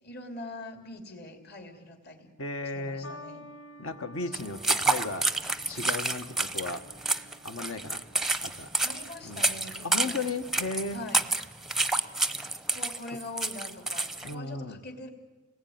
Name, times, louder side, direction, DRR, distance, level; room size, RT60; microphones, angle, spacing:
voice 1, 0.0-2.3 2.7-3.5 8.8-10.2 10.9-11.2 12.7-15.1, left 2 dB, 45° left, 5 dB, 3.1 m, -43 dB
voice 2, 2.4-3.1 3.8-5.3 5.7-6.9 7.4-8.0 8.4-8.7 9.2-9.5 9.8-11.0 14.2-14.8, left 3 dB, 65° left, 8 dB, 1.5 m, -35 dB
sound 1, 3.0-9.5 10.4-10.8, equal, 80° left, 1.4 m, -52 dB
sound 2, 4.3-14.3, right 2 dB, ahead, 0.8 m, -29 dB
29.5 x 20.0 x 9.4 m, 1.3 s
head